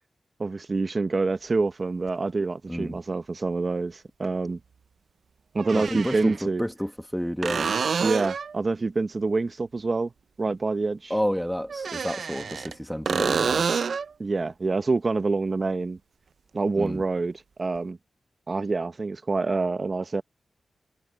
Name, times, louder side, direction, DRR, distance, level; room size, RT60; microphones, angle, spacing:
voice 1, 0.4-4.6 5.5-6.6 8.0-10.1 10.4-11.1 14.2-16.0 16.5-17.3 17.6-18.0 18.5-20.2, right 3 dB, 40° right, 0.9 m, -26 dB
sound 1, 2.1-2.2 4.2-4.3 5.6-6.4 7.4-8.6 11.7-12.7 13.1-14.1 17.8-17.9, right 6 dB, 70° right, 0.5 m, -27 dB
voice 2, 2.7-3.0 5.7-7.7 11.1-13.6 16.8-17.0, equal, ahead, 1.3 m, -30 dB
wide cardioid pair, 85°, 0 cm